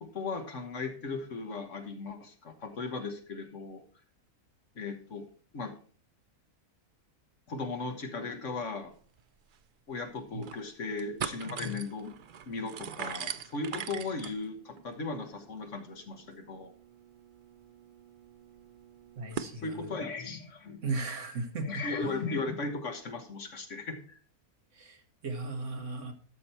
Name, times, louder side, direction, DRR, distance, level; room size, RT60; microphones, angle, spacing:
voice 1, 0.0-3.8 4.7-5.2 5.5-5.7 7.5-8.9 9.9-12.1 12.5-16.7 19.6-20.8 21.7-24.2, left 3 dB, 55° left, 6 dB, 1.5 m, -37 dB
sound 1, 9.2-9.3 9.5-9.6 10.2-10.6 10.9-19.6, right 8 dB, 80° right, 0.4 m, -42 dB
voice 2, 19.2-19.9 20.8-21.9 24.7-26.1, right 3 dB, 55° right, 5 dB, 1.7 m, -36 dB
12.5 x 6.4 x 4.3 m, 0.43 s
omnidirectional pair, 1.6 m